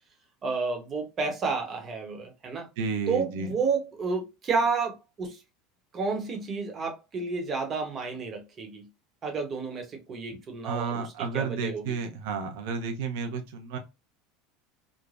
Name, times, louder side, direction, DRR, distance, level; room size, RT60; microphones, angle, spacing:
voice 1, 0.4-2.7 3.1-5.4 5.9-8.9 9.2-12.0, right 4 dB, 30° right, 0.9 m, -31 dB
voice 2, 2.8-3.5 10.6-13.8, right 5 dB, 75° right, 0.7 m, -32 dB
3.2 x 2.0 x 2.4 m
supercardioid pair, 140°, 0 cm